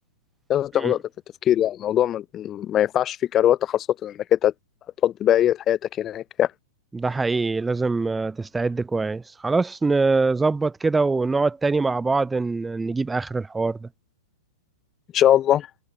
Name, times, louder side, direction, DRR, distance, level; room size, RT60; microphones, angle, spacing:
voice 1, 0.5-1.0 1.4-4.5 5.0-6.5 15.1-15.7, left 11 dB, 25° left, 1.6 m, -21 dB
voice 2, 6.9-13.9, right 3 dB, 10° right, 0.5 m, -23 dB
hypercardioid pair, 135°, 0 cm